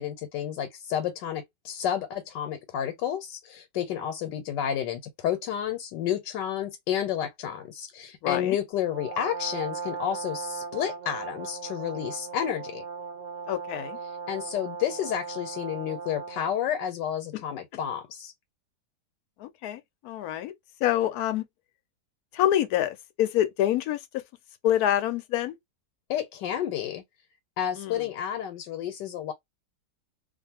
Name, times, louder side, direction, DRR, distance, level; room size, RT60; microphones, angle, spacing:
voice 1, 0.0-12.8 14.3-18.3 26.1-27.0 27.6-29.3, left 9 dB, 90° left, 1.3 m, -31 dB
voice 2, 8.2-8.6 13.5-14.0 17.3-17.4 19.4-20.5 20.8-21.4 22.3-24.0 24.6-25.6 27.8-28.0, left 12 dB, 70° left, 1.0 m, -26 dB
Brass instrument, 8.8-16.6, right 5 dB, 55° right, 0.7 m, -38 dB
2.6 x 2.4 x 2.8 m
omnidirectional pair, 1.9 m